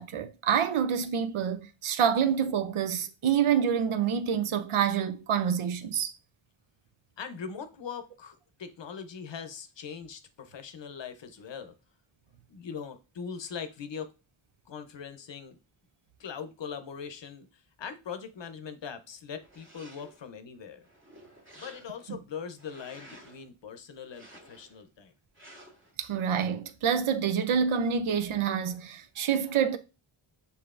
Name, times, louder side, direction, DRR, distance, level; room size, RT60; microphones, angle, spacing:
voice 1, 0.0-6.1 22.1-22.2 26.0-29.8, right 8 dB, 85° right, 0.6 m, -27 dB
voice 2, 7.2-11.8 12.5-14.1 14.7-15.6 16.2-20.9 21.6-25.1, left 6 dB, 65° left, 0.7 m, -41 dB
sound 1, 19.4-20.3 20.8-22.1 22.5-23.4 24.0-24.8 25.3-25.9, right 1 dB, 25° right, 1.6 m, -53 dB
6.7 x 2.7 x 2.4 m
wide cardioid pair, 65°, 48 cm